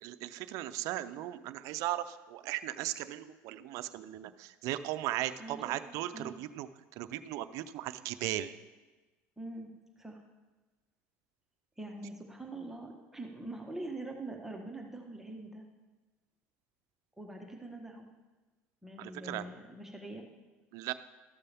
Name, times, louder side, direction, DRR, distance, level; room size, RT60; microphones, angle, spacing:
voice 1, 0.0-6.7 6.9-8.6 19.0-19.5 20.7-20.9, right 14 dB, 70° right, 13 dB, 0.5 m, -37 dB
voice 2, 5.4-5.8 6.1-6.3 9.4-9.7 10.0-10.2 11.8-15.6 17.2-18.1 18.8-20.3, right 2 dB, 5° right, 1 dB, 1.2 m, -43 dB
13.0 x 6.7 x 3.5 m, 1.2 s
supercardioid pair, 90°, 6 cm